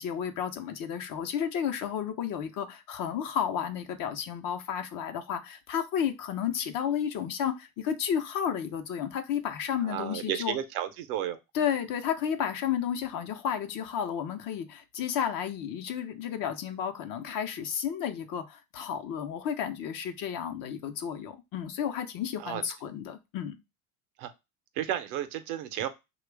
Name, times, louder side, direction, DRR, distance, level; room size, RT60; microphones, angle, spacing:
voice 1, 0.0-10.6 11.5-23.6, left 8 dB, 50° left, 0.7 m, -32 dB
voice 2, 9.8-11.4 22.4-22.6 24.2-24.3 24.8-25.9, right 11 dB, 80° right, 0.7 m, -32 dB
3.0 x 2.3 x 3.2 m
supercardioid pair, 95°, 44 cm